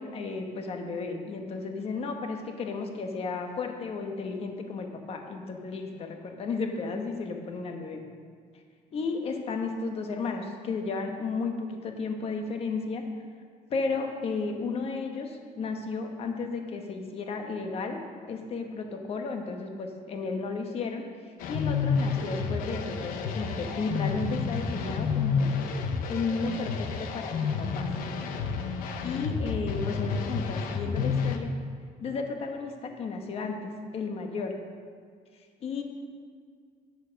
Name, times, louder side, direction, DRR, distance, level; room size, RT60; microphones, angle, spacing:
voice 1, 0.0-8.0 8.9-13.0 13.7-18.0 18.3-21.0 21.5-25.5 26.1-27.9 29.0-31.5 32.0-33.6 33.9-34.5 35.6-35.8, left 4 dB, 40° left, 4 dB, 1.2 m, -33 dB
sound 1, 21.4-31.4, left 5 dB, 65° left, 0.9 m, -30 dB
10.5 x 7.3 x 6.4 m, 2.1 s
cardioid pair, 160°, 15 cm